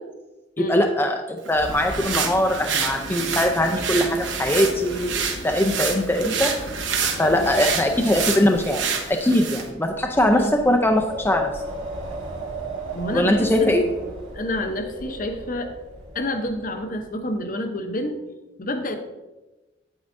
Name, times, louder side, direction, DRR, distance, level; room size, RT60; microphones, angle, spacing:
voice 1, 0.7-6.5 7.2-11.6 13.1-13.8, left 1 dB, 10° left, 3 dB, 0.5 m, -21 dB
sound 1, 1.4-9.7, right 6 dB, 70° right, 1.0 m, -28 dB
sound 2, 1.8-8.3, left 1 dB, 70° left, 1.7 m, -38 dB
voice 2, 7.2-7.7 10.3-10.6 12.9-15.7 16.1-18.2 18.6-19.0, left 1 dB, 45° left, 6 dB, 0.7 m, -29 dB
Wind, 7.7-17.1, right 1 dB, 85° right, 2.3 m, -36 dB
8.6 x 8.4 x 2.6 m, 1.1 s
head